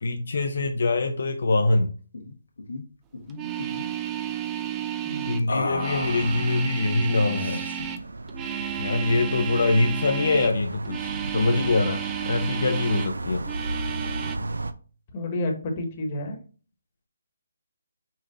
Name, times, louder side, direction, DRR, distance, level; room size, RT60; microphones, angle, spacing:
voice 1, 0.0-1.9 5.3-7.7 8.8-13.5, left 2 dB, 65° left, 5 dB, 0.6 m, -24 dB
sound 1, 2.1-2.3 2.6-2.8 3.1-3.9 5.5-6.7 7.4-8.0, left 2 dB, 80° left, 1.3 m, -33 dB
sound 2, 3.3-10.6 10.8-13.1 13.4-14.4, right 9 dB, 15° right, 0.3 m, -32 dB
voice 2, 5.0-5.6 15.1-16.4, left 1 dB, 30° left, 2 dB, 1.2 m, -30 dB
sound 3, 8.0-14.7, right 2 dB, 90° right, 0.4 m, -34 dB
5.6 x 2.4 x 3.8 m, 0.38 s
hypercardioid pair, 160°, 0 cm